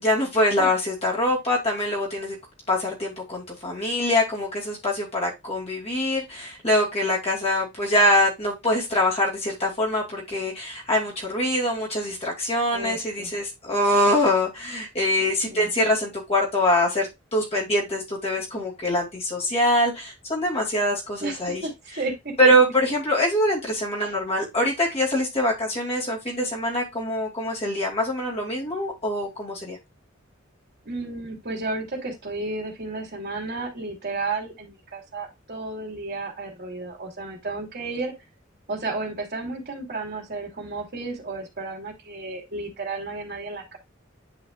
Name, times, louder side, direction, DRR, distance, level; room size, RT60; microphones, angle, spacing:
voice 1, 0.0-2.4 2.7-21.6 22.4-29.8, left 1 dB, 35° left, -3 dB, 2.6 m, -24 dB
voice 2, 12.7-13.3 15.5-15.7 21.2-22.5 24.0-24.1 30.8-38.1 38.7-43.8, right 3 dB, 55° right, -1 dB, 2.8 m, -33 dB
10.5 x 4.9 x 2.4 m, 0.21 s
head